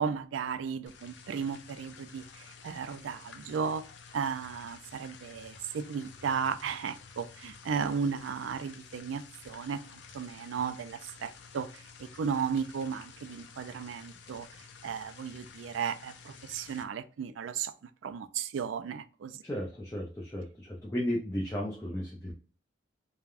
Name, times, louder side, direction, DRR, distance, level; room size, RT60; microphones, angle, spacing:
voice 1, 0.0-3.8 4.1-14.5 14.8-19.4, right 6 dB, 90° right, 12 dB, 0.3 m, -35 dB
sound 1, 0.9-16.8, left 5 dB, 70° left, 0.5 m, -51 dB
voice 2, 19.4-22.3, equal, 15° left, -3 dB, 0.5 m, -34 dB
3.3 x 2.2 x 2.4 m, 0.38 s
head